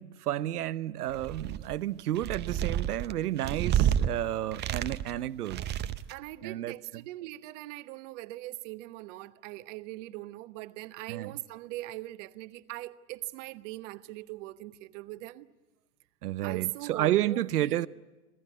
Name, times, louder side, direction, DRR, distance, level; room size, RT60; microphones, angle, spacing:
voice 1, 0.0-5.6 6.4-7.0 11.1-11.3 16.2-17.9, right 13 dB, 80° right, 0.9 m, -31 dB
sound 1, 1.1-1.7 2.2-4.1 4.5-5.2 5.5-6.2, right 10 dB, 25° right, 0.7 m, -29 dB
voice 2, 6.1-15.5 16.4-17.9, right 18 dB, 50° right, 1.2 m, -41 dB
26.5 x 17.5 x 9.5 m
hypercardioid pair, 115°, 45 cm